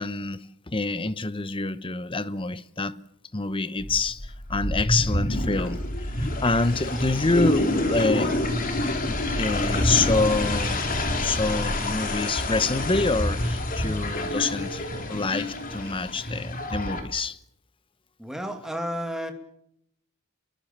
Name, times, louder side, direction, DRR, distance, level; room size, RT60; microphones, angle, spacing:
voice 1, 0.0-3.0 3.3-8.4 9.1-10.9 11.2-17.4, left 3 dB, 25° left, 0.9 m, -27 dB
sound 1, 3.8-17.0, left 1 dB, 40° left, 3.6 m, -27 dB
voice 2, 18.2-19.3, equal, 5° right, 2.6 m, -31 dB
27.5 x 22.5 x 7.5 m
head